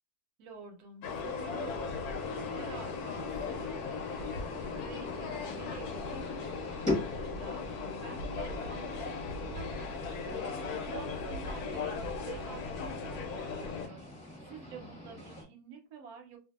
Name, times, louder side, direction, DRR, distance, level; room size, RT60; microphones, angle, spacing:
voice 1, 0.4-2.1 2.4-4.3 4.8-10.4 10.8-14.1 14.4-16.4, right 4 dB, 80° right, 3 dB, 1.1 m, -49 dB
sound 1, 1.0-13.9, left 4 dB, 80° left, 1.1 m, -37 dB
sound 2, 2.1-15.4, left 2 dB, 5° left, 0.8 m, -43 dB
2.5 x 2.5 x 2.3 m, 0.33 s
omnidirectional pair, 1.7 m